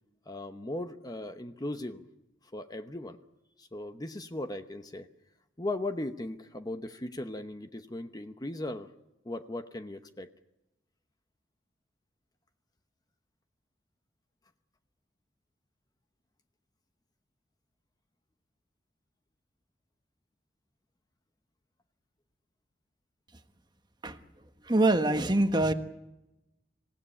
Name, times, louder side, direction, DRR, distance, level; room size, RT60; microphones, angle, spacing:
voice 1, 0.3-2.0 2.5-3.2 3.6-5.1 5.6-8.9 9.2-10.3, left 1 dB, 20° left, 9 dB, 0.9 m, -37 dB
voice 2, 24.6-25.7, right 2 dB, 25° right, 8 dB, 1.3 m, -24 dB
26.0 x 16.5 x 9.9 m, 0.96 s
head